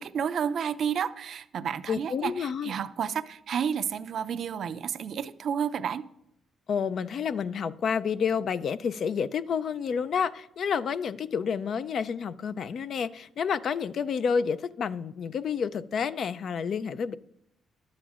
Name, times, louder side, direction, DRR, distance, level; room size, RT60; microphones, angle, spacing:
voice 1, 0.0-6.0, right 7 dB, 60° right, 0.4 m, -31 dB
voice 2, 1.9-2.7 6.7-17.2, left 6 dB, 60° left, 0.4 m, -29 dB
12.0 x 8.5 x 2.4 m
supercardioid pair, 70°, 0 cm